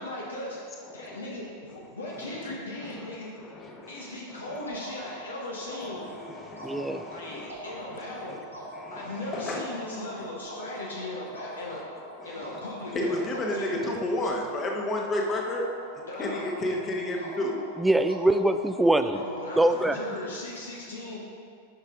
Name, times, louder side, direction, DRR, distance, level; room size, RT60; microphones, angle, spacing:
voice 1, 0.0-3.3 3.9-6.1 7.1-8.4 8.9-11.8 12.2-13.9 16.1-16.5 19.1-21.2, left 1 dB, 70° left, -3 dB, 1.1 m, -38 dB
voice 2, 0.8-1.2 2.1-3.1 3.4-4.6 5.0-5.2 5.8-8.4 8.7-9.7 10.1-10.3 10.6-11.1 11.7-15.7 16.2-17.6 19.9-20.0, left 1 dB, 25° left, 0 dB, 1.1 m, -33 dB
sound 1, 4.7-20.0, equal, 85° right, 1.4 m, -43 dB
voice 3, 6.6-7.0 17.8-19.2 19.6-20.0, right 1 dB, 5° right, 9 dB, 0.4 m, -23 dB
9.6 x 5.6 x 3.7 m, 2.2 s
figure-of-eight pair, 90°, 0 cm